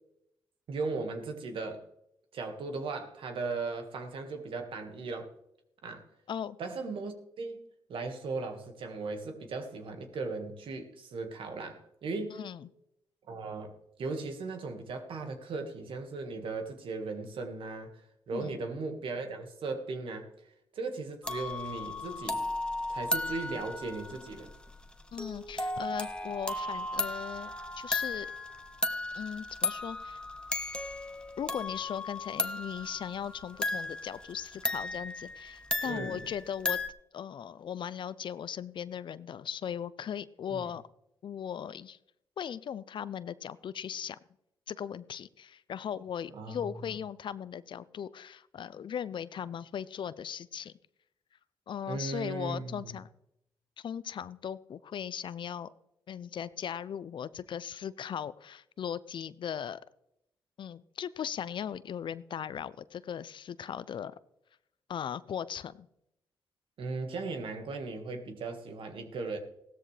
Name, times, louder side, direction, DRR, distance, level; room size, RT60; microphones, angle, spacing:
voice 1, 0.7-1.8 2.3-5.3 5.8-6.0 6.6-7.6 7.9-12.4 13.3-17.9 18.3-20.3 20.7-22.4 22.9-24.5 35.8-36.3 40.5-40.6 46.3-46.6 51.9-53.0 66.8-69.4, right 3 dB, 70° right, 5 dB, 1.8 m, -37 dB
voice 2, 12.3-12.7 18.3-18.6 25.1-28.3 29.1-30.2 31.4-36.8 37.1-40.8 41.2-42.0 42.4-44.2 44.7-50.7 51.7-53.1 53.8-55.7 56.1-59.8 60.6-64.1 64.9-65.9, left 8 dB, 60° left, 17 dB, 0.5 m, -38 dB
sound 1, 21.2-36.9, left 2 dB, 10° left, 1.2 m, -35 dB
16.0 x 13.0 x 3.4 m, 0.81 s
supercardioid pair, 60°, 9 cm